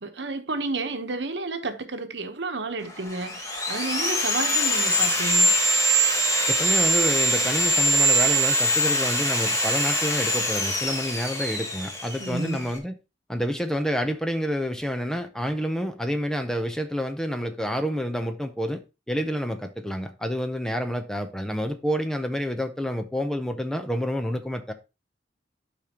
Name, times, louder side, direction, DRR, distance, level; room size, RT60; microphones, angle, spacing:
voice 1, 0.0-5.6 12.2-12.6, right 3 dB, 75° right, 1.0 m, -31 dB
Sawing, 2.9-12.8, right 1 dB, 20° left, 1.5 m, -23 dB
voice 2, 6.5-12.9 13.3-18.8 19.1-24.7, equal, 5° left, 0.7 m, -28 dB
12.0 x 5.1 x 2.9 m
head